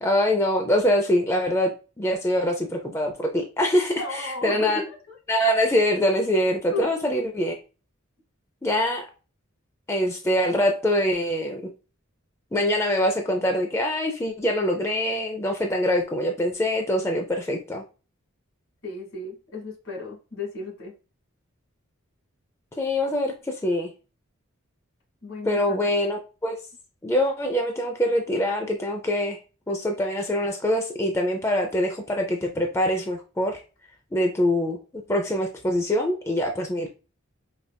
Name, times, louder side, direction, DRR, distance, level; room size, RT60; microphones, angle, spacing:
voice 1, 0.0-4.8 5.3-7.6 8.6-9.0 9.9-11.6 12.5-17.8 22.8-23.9 25.4-26.6 27.0-29.4 29.7-33.6 34.1-36.9, left 1 dB, 15° left, 0.4 m, -24 dB
voice 2, 4.0-5.2 6.7-6.9 18.8-20.9 25.2-25.9, left 3 dB, 65° left, 2.0 m, -34 dB
5.1 x 2.4 x 2.2 m
head